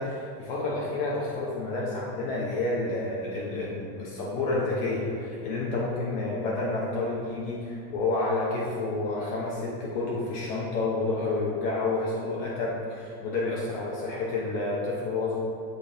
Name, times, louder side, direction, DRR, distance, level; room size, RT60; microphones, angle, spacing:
voice 1, 0.0-15.4, left 2 dB, 55° left, -4 dB, 1.0 m, -29 dB
8.0 x 4.0 x 3.4 m, 2.3 s
cardioid pair, 160°, 36 cm